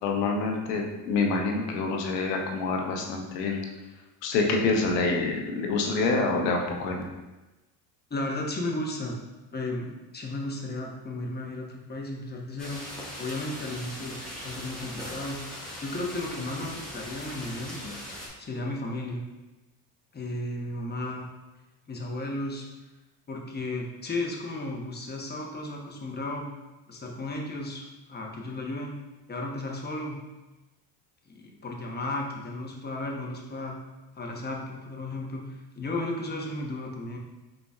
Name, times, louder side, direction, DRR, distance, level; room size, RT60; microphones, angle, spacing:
voice 1, 0.0-3.6 4.2-7.0, left 3 dB, 90° left, 2 dB, 0.9 m, -26 dB
voice 2, 8.1-9.2 9.5-12.8 13.2-15.4 15.8-17.9 18.4-19.2 20.1-21.2 21.9-22.7 23.3-26.5 26.9-28.9 29.3-30.2 31.3-33.7 34.2-37.2, left 2 dB, 20° left, 0 dB, 0.9 m, -34 dB
sound 1, 12.6-18.3, left 1 dB, ahead, 1.4 m, -40 dB
5.1 x 3.9 x 2.4 m, 1.1 s
supercardioid pair, 85°, 47 cm